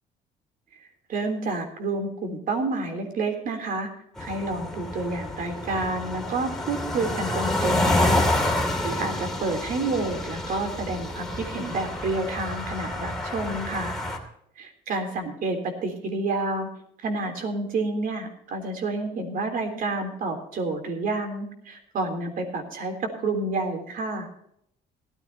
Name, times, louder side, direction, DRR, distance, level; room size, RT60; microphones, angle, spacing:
voice 1, 1.1-3.9 4.2-8.3 8.8-13.9 14.6-16.7 17.0-24.3, right 3 dB, 55° right, 5 dB, 3.4 m, -29 dB
sound 1, 4.2-14.2, left 1 dB, 5° left, 2.6 m, -28 dB
17.5 x 14.0 x 2.9 m, 0.70 s
cardioid pair, 110°, 17 cm